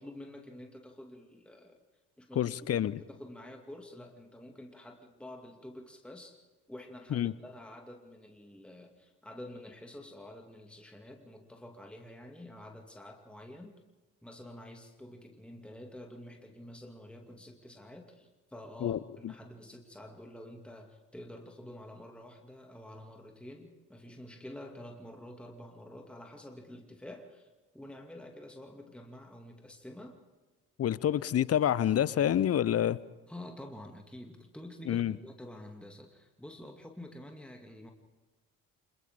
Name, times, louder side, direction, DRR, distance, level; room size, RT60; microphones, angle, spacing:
voice 1, 0.0-1.8 2.2-13.7 14.2-27.5 27.7-30.2 33.3-37.9, left 1 dB, ahead, 3 dB, 2.5 m, -48 dB
voice 2, 2.4-3.0 7.1-7.3 18.8-19.3 30.8-33.0 34.9-35.2, left 10 dB, 30° left, 21 dB, 0.8 m, -28 dB
30.0 x 26.0 x 3.8 m, 1.3 s
figure-of-eight pair, 45°, 47 cm